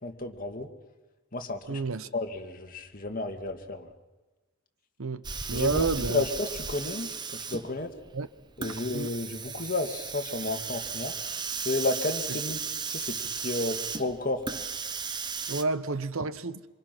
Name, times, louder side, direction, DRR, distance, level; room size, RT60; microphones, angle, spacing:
voice 1, 0.0-0.7 1.3-1.8 2.1-3.9 5.5-7.9 8.6-11.1 11.6-12.6 12.9-14.4, left 2 dB, 40° left, 2.1 m, -32 dB
voice 2, 1.7-2.1 5.0-6.2 8.1-8.3 8.9-9.1 15.5-16.7, right 4 dB, 70° right, 0.9 m, -30 dB
Hiss, 5.2-15.6, right 5 dB, 20° right, 0.8 m, -35 dB
26.5 x 26.5 x 6.1 m
head